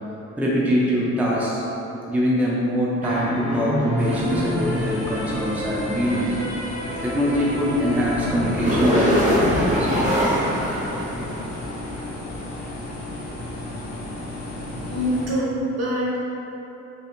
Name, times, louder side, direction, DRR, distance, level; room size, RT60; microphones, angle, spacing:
voice 1, 0.4-1.6 2.1-6.4 7.0-9.9, equal, 5° right, -6 dB, 0.5 m, -23 dB
sound 1, 3.0-11.7, equal, 25° right, 1.1 m, -25 dB
sound 2, 4.0-15.3, left 1 dB, 65° left, 0.9 m, -34 dB
voice 2, 14.6-16.2, equal, 55° right, -6 dB, 1.2 m, -25 dB
3.8 x 3.5 x 2.4 m, 3.0 s
cardioid pair, 90°, 30 cm